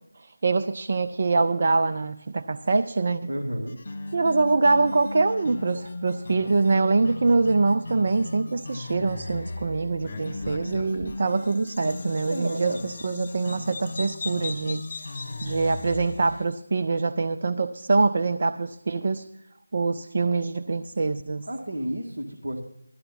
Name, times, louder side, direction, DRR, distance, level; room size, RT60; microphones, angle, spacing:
voice 1, 0.4-3.3 4.1-14.9 15.4-19.2 19.7-21.5, right 3 dB, 40° right, 0.5 m, -24 dB
voice 2, 3.2-3.8 12.3-12.8 21.5-22.6, right 1 dB, 55° right, 2.0 m, -31 dB
sound 1, 3.7-16.5, left 2 dB, 45° left, 1.5 m, -37 dB
Bird vocalization bird call bird song, 10.0-16.3, left 4 dB, 25° left, 3.1 m, -40 dB
15.5 x 13.0 x 4.1 m
figure-of-eight pair, 165°, 0 cm